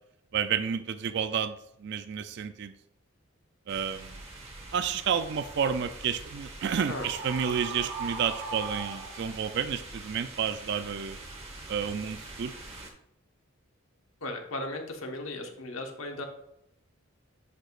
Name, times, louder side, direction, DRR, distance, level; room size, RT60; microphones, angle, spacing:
voice 1, 0.3-2.7 3.7-4.2 4.7-11.2 11.7-12.5, right 7 dB, 55° right, 11 dB, 0.4 m, -30 dB
sound 1, 3.7-12.9, right 2 dB, 30° right, 1.2 m, -45 dB
Screaming, 6.9-9.6, right 3 dB, 80° right, 1.6 m, -38 dB
voice 2, 14.2-16.2, left 2 dB, 80° left, 2 dB, 1.2 m, -36 dB
10.0 x 4.9 x 2.4 m, 0.77 s
head